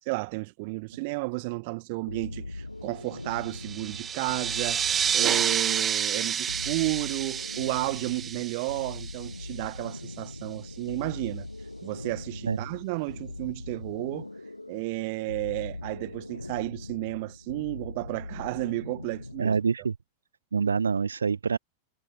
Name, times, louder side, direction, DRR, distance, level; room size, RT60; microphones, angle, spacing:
voice 1, 0.1-11.5 11.8-14.3 14.7-19.6, right 27 dB, 50° right, 1.7 m, -32 dB
sound 1, 2.1-19.7, left 2 dB, 85° left, 1.0 m, -41 dB
sound 2, 3.4-9.7, right 8 dB, 25° right, 1.7 m, -29 dB
voice 2, 19.4-19.9 20.5-21.6, right 5 dB, 75° right, 0.6 m, -26 dB
figure-of-eight pair, 90°, 0 cm